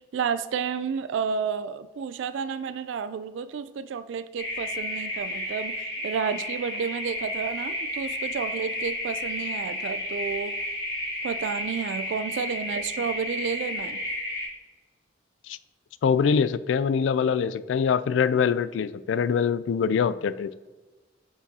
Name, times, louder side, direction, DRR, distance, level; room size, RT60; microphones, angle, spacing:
voice 1, 0.1-5.7 6.0-10.5 11.2-14.0, right 6 dB, 80° right, 13 dB, 0.3 m, -31 dB
sound 1, 4.4-14.4, left 1 dB, 60° left, 2.3 m, -32 dB
voice 2, 16.0-20.5, left 6 dB, 80° left, 15 dB, 0.3 m, -24 dB
8.1 x 5.9 x 2.8 m, 1.3 s
head